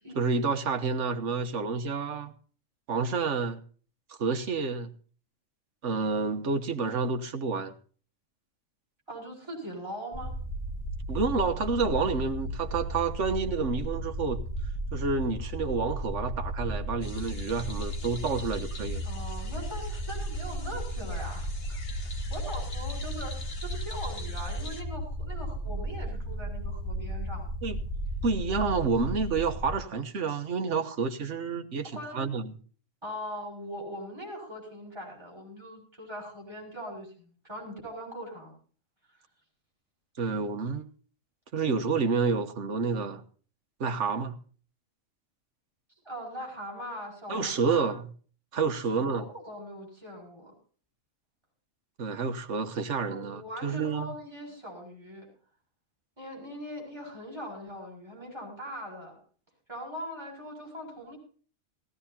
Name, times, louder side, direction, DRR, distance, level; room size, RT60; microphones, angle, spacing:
voice 1, 0.1-2.3 2.9-3.6 4.2-4.9 5.8-7.7 11.1-14.4 14.9-19.1 27.6-27.8 28.2-32.6 40.2-40.9 41.5-43.2 43.8-44.4 47.3-48.0 48.5-49.3 52.0-54.1, right 4 dB, 65° right, 1.5 m, -29 dB
voice 2, 9.1-10.3 19.0-27.5 32.0-32.3 33.0-38.5 40.2-40.4 46.0-47.9 49.0-50.5 53.1-55.3 56.2-59.2 59.7-61.2, equal, 20° right, 7.1 m, -41 dB
sound 1, 10.1-29.8, right 1 dB, 20° left, 7.0 m, -35 dB
sound 2, 17.0-24.8, left 3 dB, 50° left, 1.7 m, -46 dB
18.0 x 16.0 x 2.9 m
omnidirectional pair, 1.3 m